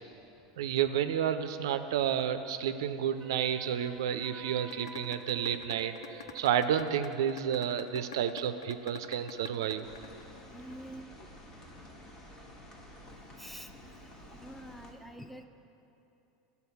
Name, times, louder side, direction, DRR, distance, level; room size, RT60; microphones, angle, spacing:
voice 1, 0.6-9.8, right 9 dB, 80° right, 10 dB, 0.3 m, -31 dB
Wind instrument woodwind instrument, 3.2-6.6, right 2 dB, 15° right, 1.3 m, -51 dB
sound 1, 4.7-10.7, left 8 dB, 85° left, 0.4 m, -45 dB
sound 2, 9.8-14.9, left 1 dB, 30° left, 1.2 m, -51 dB
voice 2, 10.5-11.1 13.4-13.7 14.4-15.5, right 1 dB, 5° left, 8 dB, 0.4 m, -46 dB
10.5 x 4.1 x 5.6 m, 2.9 s
hypercardioid pair, 100°, 2 cm